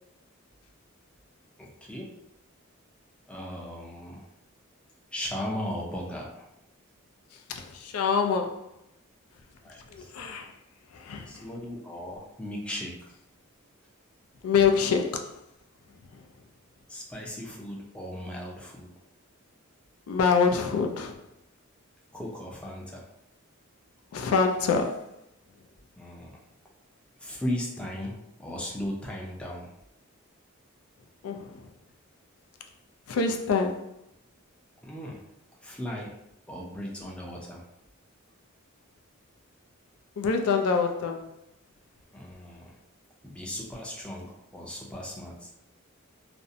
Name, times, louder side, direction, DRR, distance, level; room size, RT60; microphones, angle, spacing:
voice 1, 1.6-2.1 3.3-4.3 5.1-6.5 9.6-10.1 11.3-13.1 16.9-18.9 22.1-23.1 26.0-26.3 27.2-29.7 34.8-35.2 35.6-36.1 36.5-37.6 42.1-42.8 43.2-45.5, left 1 dB, 5° left, 0.4 m, -37 dB
voice 2, 7.5-8.6 9.9-10.5 10.9-11.4 14.4-15.2 20.1-21.1 24.1-25.1 31.2-31.7 33.1-33.9 40.2-41.3, left 5 dB, 90° left, 0.4 m, -25 dB
2.5 x 2.0 x 2.6 m
head